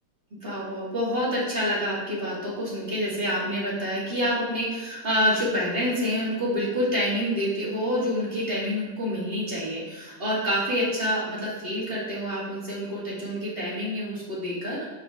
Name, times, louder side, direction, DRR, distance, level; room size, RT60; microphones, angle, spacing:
voice 1, 0.4-14.8, equal, 35° right, -7 dB, 2.8 m, -27 dB
6.5 x 4.5 x 5.9 m, 1.3 s
omnidirectional pair, 1.8 m